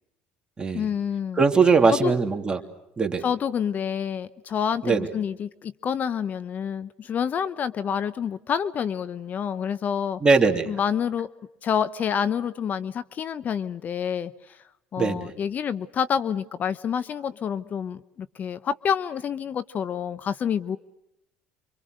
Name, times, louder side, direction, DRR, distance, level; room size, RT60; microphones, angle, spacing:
voice 1, 0.7-1.4 1.9-2.1 3.2-10.2 10.7-11.3 11.6-14.6 14.9-20.8, left 8 dB, 45° left, 15 dB, 0.9 m, -28 dB
voice 2, 1.4-2.6 3.0-3.2 4.8-5.1 10.2-10.7 15.0-15.3, right 4 dB, 20° right, 5 dB, 3.1 m, -20 dB
28.5 x 25.5 x 6.5 m, 0.85 s
supercardioid pair, 85°, 4 cm